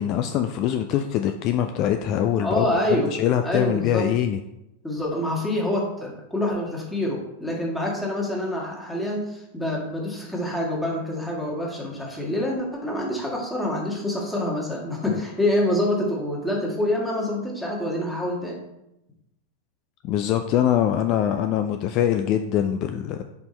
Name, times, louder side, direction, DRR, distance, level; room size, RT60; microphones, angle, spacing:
voice 1, 0.0-4.4 15.1-15.2 20.0-23.2, left 10 dB, 40° left, 7 dB, 0.4 m, -23 dB
voice 2, 2.4-3.1 3.4-4.1 4.8-18.6, left 1 dB, 5° left, -3 dB, 1.6 m, -26 dB
5.2 x 4.2 x 4.3 m, 0.88 s
figure-of-eight pair, 90°, 0 cm